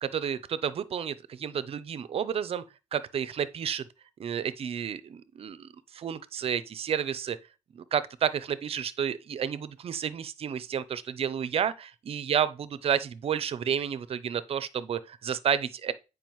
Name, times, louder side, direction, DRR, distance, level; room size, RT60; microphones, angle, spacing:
voice 1, 0.0-2.6 2.9-3.8 4.2-7.4 7.7-15.9, right 8 dB, 45° right, 0.6 m, -31 dB
8.9 x 4.9 x 3.1 m
cardioid pair, 110°, 13 cm